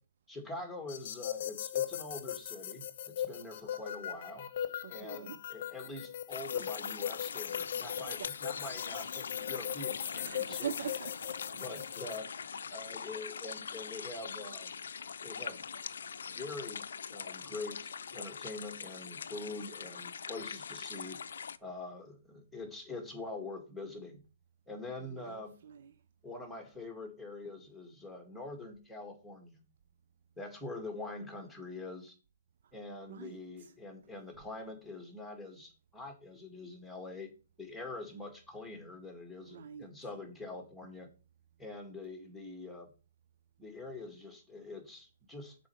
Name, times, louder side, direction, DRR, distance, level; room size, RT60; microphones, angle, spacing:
voice 1, 0.3-4.5 4.9-10.7 11.6-12.3 12.7-14.7 15.2-15.6 16.3-21.2 21.6-24.2 24.7-25.5 26.2-29.6 30.4-32.2 32.7-37.3 37.6-41.1 41.6-42.9 43.6-45.6, left 2 dB, ahead, 1.9 m, -44 dB
sound 1, 0.9-12.2, left 10 dB, 50° left, 0.9 m, -39 dB
voice 2, 4.8-5.4 8.2-8.3 10.2-11.4 24.9-25.9 33.1-33.7 39.5-39.9, right 8 dB, 60° right, 0.4 m, -43 dB
sound 2, 6.3-21.6, left 6 dB, 80° left, 0.5 m, -42 dB
7.1 x 4.4 x 6.2 m
hypercardioid pair, 150°, 0 cm